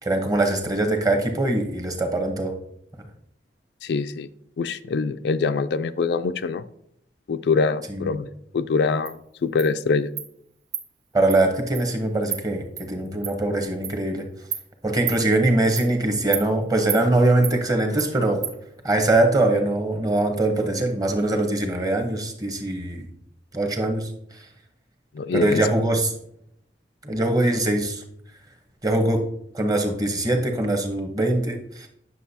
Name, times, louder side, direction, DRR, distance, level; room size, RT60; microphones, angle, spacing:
voice 1, 0.0-2.6 7.9-8.2 11.1-14.3 14.8-18.4 18.8-23.1 23.5-24.4 25.3-26.1 27.0-28.0 28.8-29.3 29.5-31.9, right 2 dB, 20° right, 4 dB, 1.0 m, -22 dB
voice 2, 3.8-4.3 4.6-6.6 7.3-8.3 8.5-10.1 25.2-25.6, left 4 dB, 65° left, 11 dB, 0.3 m, -24 dB
Insect, 9.1-9.2 9.6-9.7 10.2-10.3 10.7-10.8 11.3-11.4 11.7-11.9 12.3-12.4 12.8-12.9 13.2-13.3 13.8-14.0 14.5-14.6 15.1-15.2 15.8-15.9 16.3-16.5 16.9-17.0 17.4-17.6 18.0-18.1 18.4-18.5, right 9 dB, 80° right, 0.9 m, -29 dB
9.5 x 6.3 x 2.8 m, 0.72 s
head